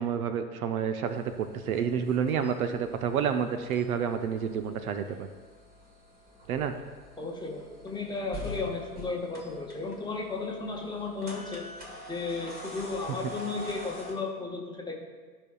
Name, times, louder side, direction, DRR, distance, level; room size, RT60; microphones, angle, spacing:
voice 1, 0.0-5.3 6.5-6.7, right 7 dB, 65° right, 8 dB, 0.7 m, -29 dB
sound 1, 1.1-14.1, left 1 dB, 20° right, 1.7 m, -46 dB
voice 2, 7.2-11.6 12.1-15.1, left 3 dB, 10° left, -1 dB, 1.1 m, -34 dB
13.5 x 5.4 x 2.3 m, 1.4 s
figure-of-eight pair, 95°, 47 cm